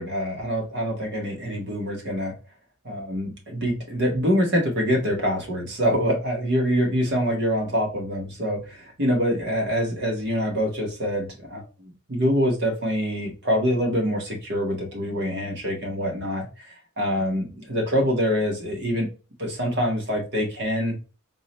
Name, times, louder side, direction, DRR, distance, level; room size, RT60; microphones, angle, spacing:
voice 1, 0.0-2.3 2.8-19.1 19.4-21.0, equal, 50° right, 0 dB, 1.5 m, -25 dB
3.8 x 2.8 x 3.1 m, 0.33 s
head